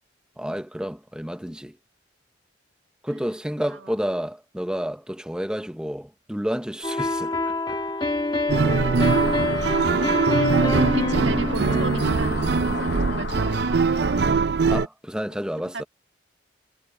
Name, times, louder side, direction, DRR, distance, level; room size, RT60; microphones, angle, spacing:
voice 1, 0.4-1.8 3.0-7.8 12.7-12.9 14.7-15.8, equal, 5° right, 0.7 m, -30 dB
sound 1, 6.8-13.6, left 2 dB, 25° left, 1.6 m, -27 dB
sound 2, 8.5-14.9, right 4 dB, 60° right, 0.5 m, -22 dB
voice 2, 8.7-9.0 9.5-12.3 12.7-13.7 15.7-15.8, right 3 dB, 80° right, 1.6 m, -32 dB
sound 3, 9.0-14.4, left 4 dB, 65° left, 0.9 m, -35 dB
head